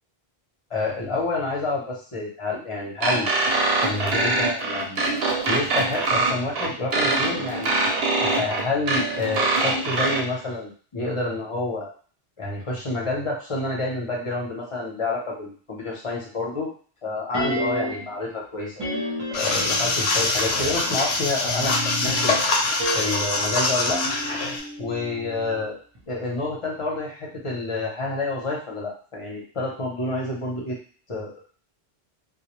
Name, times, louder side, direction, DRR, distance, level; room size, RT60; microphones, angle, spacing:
voice 1, 0.7-3.3 3.8-5.0 5.5-7.7 8.2-11.9 12.4-16.7 17.0-18.9 19.3-22.3 22.9-24.0 24.8-25.7 26.1-30.8 31.1-31.3, left 2 dB, 35° left, -3 dB, 0.7 m, -28 dB
sound 1, 3.0-10.2, right 3 dB, 75° right, 0.9 m, -23 dB
sound 2, 17.3-18.2 18.8-20.4 21.4-25.7 25.9-26.0, equal, 30° right, 0.6 m, -31 dB
sound 3, 19.3-24.6, left 3 dB, 85° left, 0.8 m, -24 dB
2.3 x 2.1 x 3.0 m, 0.42 s
omnidirectional pair, 1.1 m